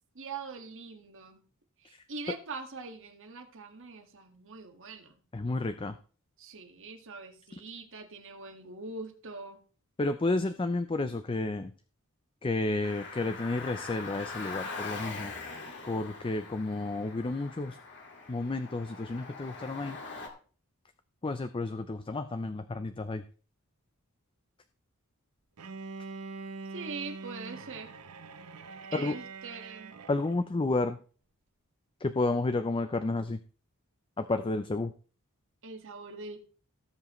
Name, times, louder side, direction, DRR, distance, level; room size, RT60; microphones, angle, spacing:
voice 1, 0.1-1.4 1.8-5.2 6.4-9.6 26.7-27.9 28.9-29.9 35.6-36.4, right 4 dB, 60° right, 5 dB, 1.7 m, -43 dB
voice 2, 5.3-5.9 10.0-11.7 12.4-15.3 15.9-17.8 18.3-20.0 21.2-23.2 28.9-29.1 30.1-31.0 32.0-33.4 34.2-34.9, left 2 dB, 25° left, 10 dB, 0.5 m, -31 dB
Car, 12.8-20.3, left 4 dB, 55° left, 2.2 m, -42 dB
Bowed string instrument, 25.6-30.4, right 4 dB, 85° right, 0.9 m, -44 dB
18.0 x 7.3 x 3.1 m, 0.40 s
head